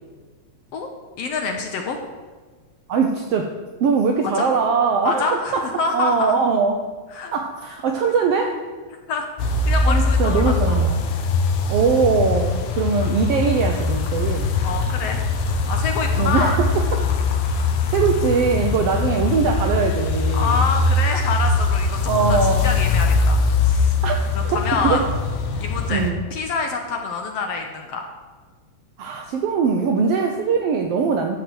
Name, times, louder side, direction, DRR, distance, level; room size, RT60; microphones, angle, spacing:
voice 1, 1.2-2.0 4.2-4.5 5.0-6.3 7.1-7.3 9.1-10.8 14.6-15.2 15.7-16.5 20.3-24.0 24.3-25.0 25.6-28.0, left 4 dB, 70° left, 4 dB, 1.6 m, -26 dB
voice 2, 2.9-6.8 7.3-8.6 9.8-11.0 11.7-14.5 16.2-17.0 17.9-20.7 22.1-22.8 24.0-25.1 25.5-25.6 25.9-26.2 29.0-31.4, right 5 dB, 80° right, 3 dB, 1.4 m, -21 dB
sound 1, 9.4-26.1, left 3 dB, 85° left, 2.5 m, -21 dB
13.0 x 4.6 x 7.6 m, 1.4 s
omnidirectional pair, 3.5 m